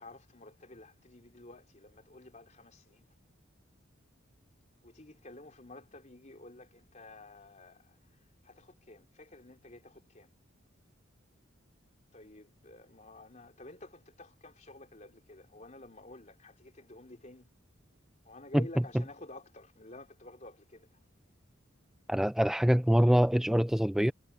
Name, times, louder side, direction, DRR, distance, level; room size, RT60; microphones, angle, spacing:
voice 1, 0.0-3.1 4.8-8.0 8.4-10.3 12.1-17.5 18.3-20.9, left 2 dB, 40° left, 3.7 m, -51 dB
voice 2, 22.1-24.1, equal, ahead, 0.4 m, -24 dB
head